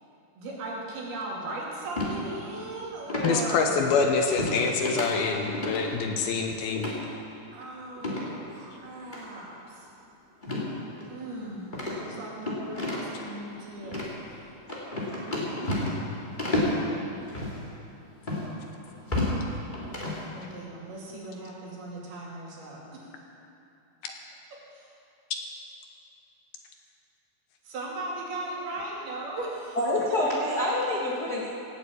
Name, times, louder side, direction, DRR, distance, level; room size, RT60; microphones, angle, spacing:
voice 1, 0.4-3.8 7.5-9.9 11.1-11.7 11.9-14.5 16.4-17.0 20.3-23.0 24.7-24.9 27.6-29.8, right 2 dB, 70° right, -5 dB, 4.7 m, -38 dB
sound 1, 2.0-2.2 3.1-3.4 4.4-4.6 4.8-5.1 5.4-5.8 6.8-7.0 8.0-8.3 9.1-9.2 10.4-10.7 11.0-11.1 11.7-13.2 13.8-14.1 14.7-16.1 16.4-16.8 17.3-17.5 18.3-18.4 18.9-19.4 19.7-20.2, left 1 dB, 15° left, 1.9 m, -30 dB
voice 2, 3.2-6.9 24.0-24.1, left 5 dB, 75° left, 3 dB, 2.7 m, -26 dB
voice 3, 29.8-31.5, left 1 dB, 50° left, -5 dB, 1.2 m, -26 dB
17.5 x 8.4 x 8.4 m, 2.9 s
omnidirectional pair, 4.7 m